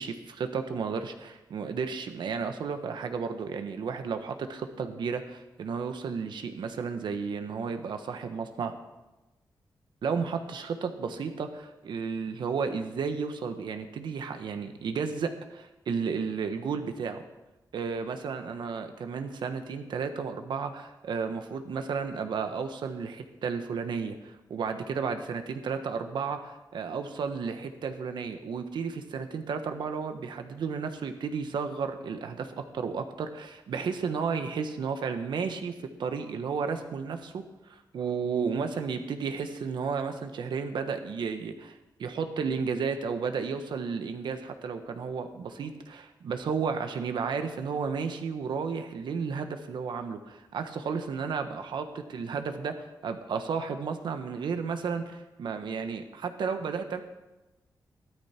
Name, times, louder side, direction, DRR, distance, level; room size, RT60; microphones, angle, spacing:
voice 1, 0.0-8.7 10.0-17.2 17.7-37.4 37.7-57.0, right 5 dB, 90° right, 7 dB, 1.3 m, -33 dB
15.0 x 13.0 x 4.5 m, 1.0 s
wide cardioid pair, 160°, 8 cm